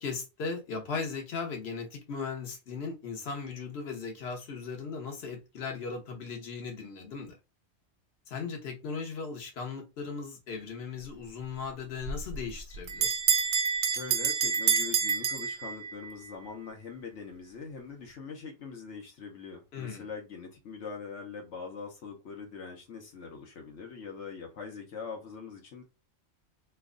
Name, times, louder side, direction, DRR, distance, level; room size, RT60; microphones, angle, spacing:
voice 1, 0.0-7.4 8.3-13.1 19.7-20.0, left 5 dB, 65° left, 1.2 m, -37 dB
Bell, 12.0-16.1, right 6 dB, 60° right, 0.6 m, -28 dB
voice 2, 13.9-25.8, left 5 dB, 90° left, 1.1 m, -42 dB
3.1 x 2.2 x 3.7 m
omnidirectional pair, 1.2 m